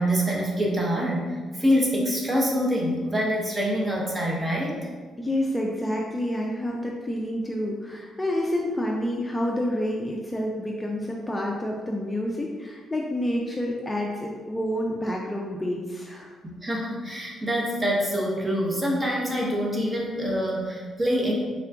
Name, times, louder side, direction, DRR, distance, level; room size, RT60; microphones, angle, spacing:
voice 1, 0.0-4.8 16.4-21.3, equal, 20° right, -2 dB, 0.9 m, -25 dB
voice 2, 5.2-16.3, left 1 dB, 15° left, -1 dB, 0.4 m, -28 dB
3.7 x 2.3 x 3.4 m, 1.5 s
cardioid pair, 90°, 0 cm